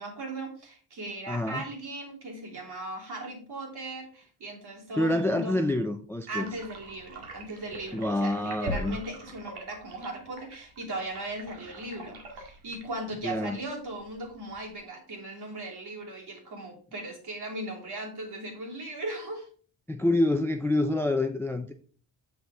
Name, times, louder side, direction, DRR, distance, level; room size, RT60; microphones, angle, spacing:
voice 1, 0.0-5.6 6.3-19.5, right 2 dB, 50° right, 3.1 m, -38 dB
voice 2, 1.3-1.6 5.0-6.5 7.9-9.0 13.2-13.6 19.9-21.7, left 1 dB, 5° left, 0.4 m, -27 dB
sound 1, 6.4-14.8, right 1 dB, 85° right, 2.2 m, -43 dB
7.3 x 6.1 x 3.5 m
cardioid pair, 110°, 49 cm